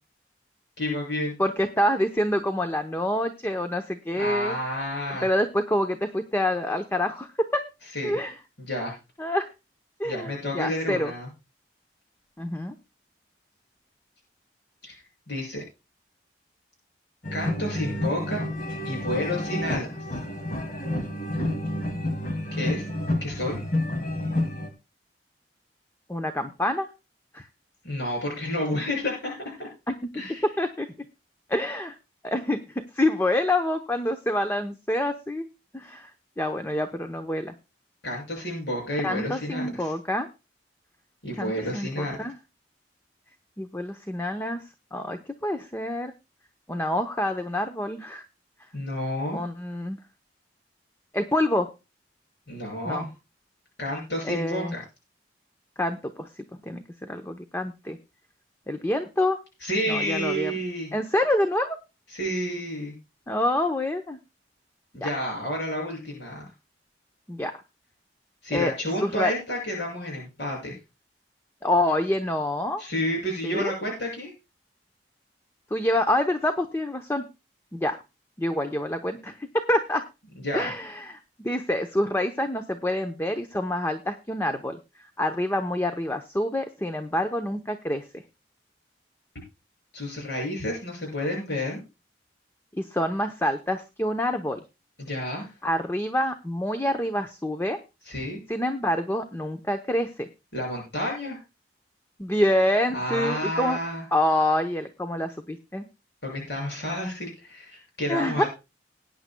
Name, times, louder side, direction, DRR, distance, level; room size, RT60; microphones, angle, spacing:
voice 1, 0.8-1.4 4.2-5.3 7.9-8.2 8.7-9.0 10.0-11.3 14.8-15.0 15.3-15.6 17.3-18.4 18.8-20.2 22.5-22.8 23.2-23.6 27.8-29.7 30.2-30.5 38.0-39.9 41.2-42.3 48.7-49.4 52.5-53.1 53.8-54.8 59.6-60.9 62.1-62.9 64.9-66.5 68.4-70.8 72.8-74.3 80.4-80.7 89.9-91.8 95.0-95.5 98.0-98.4 100.5-101.4 102.9-104.1 106.2-108.5, left 1 dB, 75° left, -2 dB, 6.5 m, -30 dB
voice 2, 1.4-4.6 5.2-7.6 8.0-8.3 9.2-9.5 10.0-11.1 12.4-12.7 26.1-26.9 27.3-27.5 29.9-30.0 30.6-30.9 31.5-32.0 32.2-35.5 35.7-36.1 36.4-37.5 39.0-40.3 41.4-42.3 43.6-44.6 44.9-46.1 46.7-48.2 49.3-50.0 51.1-51.7 52.9-53.1 54.2-54.7 55.8-58.0 58.7-59.4 59.9-60.5 60.9-61.8 63.3-64.2 65.0-65.1 67.3-67.5 68.5-68.7 69.0-69.3 71.6-72.8 73.4-73.8 75.7-77.2 77.7-78.0 78.4-80.0 80.5-84.8 85.2-88.0 92.7-94.6 95.6-97.8 98.5-100.3 102.2-103.8 104.1-105.9 108.1-108.4, left 1 dB, 15° left, 7 dB, 0.7 m, -27 dB
sound 1, 17.2-24.7, left 1 dB, 45° left, 2.4 m, -29 dB
20.5 x 9.5 x 2.2 m, 0.27 s
head